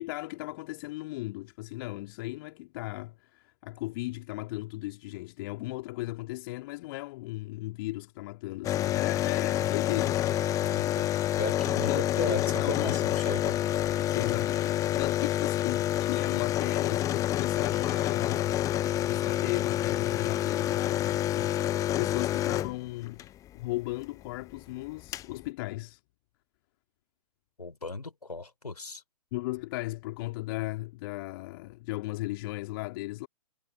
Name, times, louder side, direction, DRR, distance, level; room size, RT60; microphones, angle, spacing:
voice 1, 0.0-10.4 11.9-13.1 14.1-18.6 19.0-23.3 23.5-26.0 29.3-33.3, left 20 dB, 35° left, 2.8 m, -36 dB
sound 1, 8.6-23.3 24.6-24.7 24.8-25.3, left 13 dB, 15° left, 0.9 m, -28 dB
voice 2, 10.6-13.6 27.6-29.0, left 3 dB, 80° left, 3.2 m, -36 dB
figure-of-eight pair, 120°, 20 cm